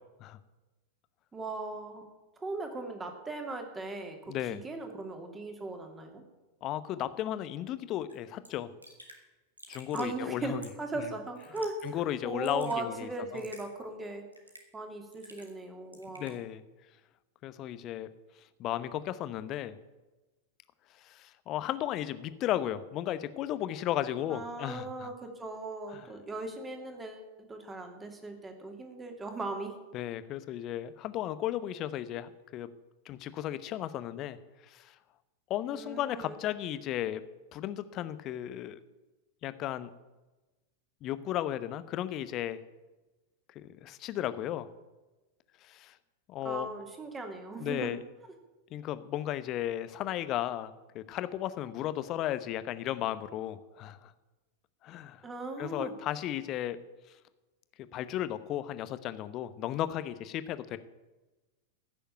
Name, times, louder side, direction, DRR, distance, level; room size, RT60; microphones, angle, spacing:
voice 1, 1.3-2.1 2.4-6.2 9.9-14.2 14.7-16.3 24.3-29.7 35.7-36.4 46.4-48.0 55.2-55.9, right 2 dB, 15° right, 4 dB, 2.6 m, -38 dB
voice 2, 4.3-4.6 6.6-8.7 9.7-10.6 11.8-13.4 16.2-16.6 17.4-18.1 18.6-19.8 21.0-25.1 25.9-26.1 29.9-32.7 33.1-34.4 34.7-34.9 35.5-37.2 37.5-38.8 39.4-39.9 41.0-42.6 43.5-44.7 45.6-45.9 46.3-46.7 47.6-48.0 48.7-54.1 54.8-55.2 55.6-56.8 57.9-60.8, left 12 dB, 35° left, 13 dB, 0.9 m, -35 dB
Raindrop / Drip, 8.1-8.2 8.4-8.5 8.8-9.2 9.6-10.1 10.6-10.9 11.4-11.9 12.2-12.8 13.4-13.7 14.3-14.7 15.1-15.6 15.9-16.4, right 1 dB, 85° right, 2.3 m, -51 dB
15.5 x 6.9 x 8.9 m, 1.1 s
figure-of-eight pair, 90°, 0 cm